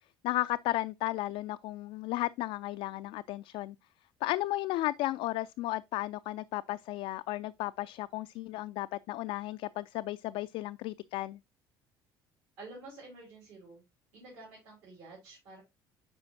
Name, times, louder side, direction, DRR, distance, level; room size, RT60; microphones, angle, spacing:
voice 1, 0.2-3.8 4.2-11.4, left 16 dB, 55° left, 0.4 m, -34 dB
voice 2, 12.6-13.8 14.1-15.6, right 2 dB, 65° right, 4.1 m, -49 dB
9.7 x 5.5 x 2.7 m
figure-of-eight pair, 60°, 12 cm